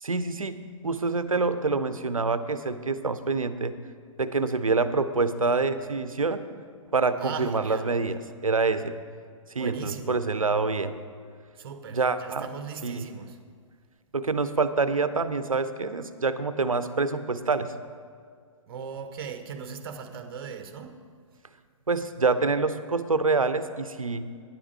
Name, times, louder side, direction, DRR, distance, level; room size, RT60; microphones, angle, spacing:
voice 1, 0.0-3.7 4.2-6.4 6.9-8.9 9.5-10.9 11.9-12.5 12.8-13.1 14.1-17.7 21.9-24.2, right 4 dB, 80° right, 0.6 m, -26 dB
voice 2, 7.2-7.9 9.6-10.2 11.6-13.4 18.7-21.0, right 6 dB, 45° right, 0.8 m, -38 dB
9.9 x 9.7 x 4.5 m
figure-of-eight pair, 120°, 17 cm